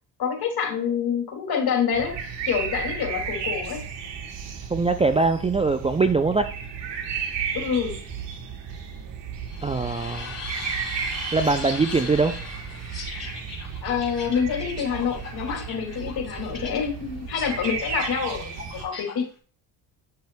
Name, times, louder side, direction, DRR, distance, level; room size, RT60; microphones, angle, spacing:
voice 1, 0.2-2.1 2.5-3.8 7.5-8.0 13.8-18.5 18.8-19.2, left 7 dB, 55° left, 2 dB, 2.5 m, -26 dB
sound 1, 1.9-18.8, right 7 dB, 70° right, 1.4 m, -34 dB
voice 2, 4.7-6.5 9.6-10.4 11.3-12.4, right 3 dB, 15° right, 9 dB, 0.4 m, -22 dB
sound 2, 9.5-19.2, left 5 dB, 35° left, 3.7 m, -39 dB
8.4 x 6.2 x 2.2 m, 0.42 s
supercardioid pair, 65°, 44 cm